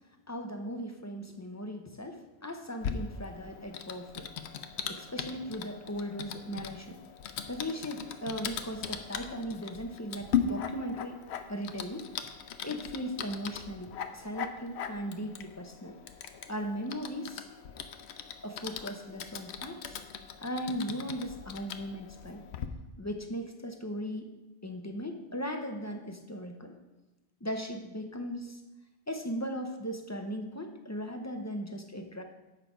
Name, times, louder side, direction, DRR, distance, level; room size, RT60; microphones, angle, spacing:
voice 1, 0.3-4.3 4.9-7.0 7.5-11.2 11.5-12.1 12.6-16.0 16.5-17.5 18.4-20.0 20.4-22.4 23.0-24.3 24.6-26.8 27.4-28.6 29.1-32.2, equal, 20° left, 4 dB, 0.5 m, -38 dB
Typing, 2.8-22.7, left 7 dB, 80° left, 0.9 m, -39 dB
8.0 x 5.6 x 5.0 m, 1.0 s
omnidirectional pair, 1.1 m